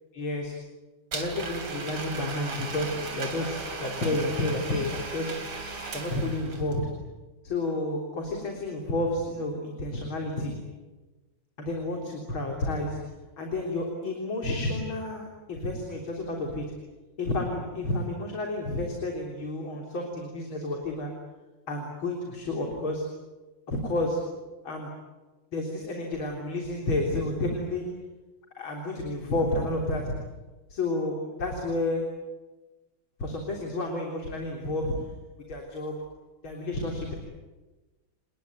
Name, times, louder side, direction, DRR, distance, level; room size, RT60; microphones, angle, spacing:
voice 1, 0.1-0.5 1.1-5.4 5.9-6.8 7.4-10.6 11.6-13.0 13.4-16.7 17.2-21.1 21.7-23.0 23.7-24.2 24.6-24.9 25.5-27.8 28.6-30.1 30.7-32.0 33.2-34.9 35.5-36.0 36.4-37.2, left 2 dB, 70° left, 1 dB, 4.4 m, -30 dB
Domestic sounds home sounds, 1.1-6.8, right 4 dB, 80° right, 4.1 m, -36 dB
29.0 x 20.5 x 9.5 m, 1.2 s
omnidirectional pair, 2.3 m